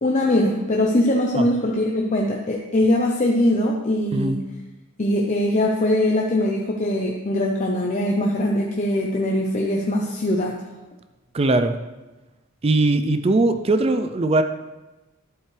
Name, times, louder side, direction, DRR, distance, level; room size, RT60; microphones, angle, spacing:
voice 1, 0.0-4.4 5.0-10.6, left 1 dB, 35° left, 0 dB, 0.7 m, -21 dB
voice 2, 11.3-11.8 12.6-14.4, right 2 dB, 30° right, 8 dB, 0.4 m, -20 dB
11.0 x 7.9 x 3.3 m, 1.1 s
head